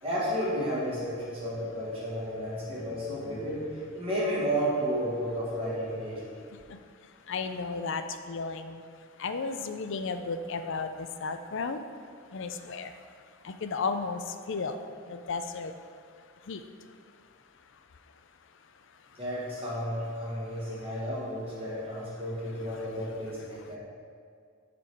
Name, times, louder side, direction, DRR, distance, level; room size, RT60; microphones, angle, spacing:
voice 1, 0.0-6.4 19.2-23.8, equal, 30° right, -6 dB, 1.7 m, -32 dB
voice 2, 7.3-8.0 8.3-8.8 9.2-11.9 12.3-12.9 13.4-14.2 14.5-14.8 15.1-15.7 16.5-16.6, left 4 dB, 60° left, 9 dB, 0.5 m, -33 dB
9.1 x 5.1 x 4.5 m, 2.2 s
head